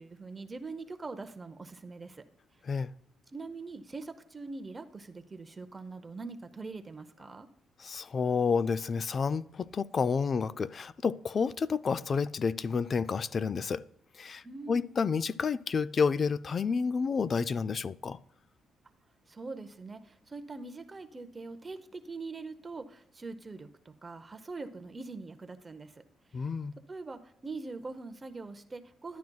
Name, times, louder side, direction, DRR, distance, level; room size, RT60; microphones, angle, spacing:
voice 1, 0.0-2.3 3.3-7.5 14.4-14.9 19.3-26.0 26.9-29.2, right 3 dB, 25° right, 0.7 m, -43 dB
voice 2, 7.8-13.8 14.1-18.2 26.3-26.7, left 5 dB, 45° left, 0.3 m, -30 dB
12.0 x 9.2 x 2.3 m
cardioid pair, 90°, 0 cm